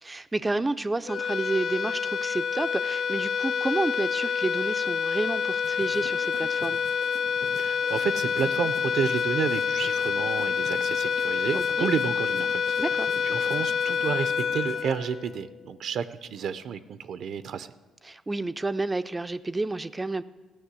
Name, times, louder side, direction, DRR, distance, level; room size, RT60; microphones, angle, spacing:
voice 1, 0.0-6.8 11.5-11.9 12.8-13.1 18.0-20.2, right 2 dB, 20° right, 12 dB, 0.4 m, -30 dB
sound 1, 1.1-15.6, left 6 dB, 65° left, 0.4 m, -27 dB
sound 2, 5.6-14.8, left 3 dB, 50° left, 0.9 m, -46 dB
voice 2, 7.6-17.7, right 7 dB, 70° right, 13 dB, 0.5 m, -31 dB
14.5 x 6.1 x 8.2 m, 1.3 s
cardioid pair, 90°, 0 cm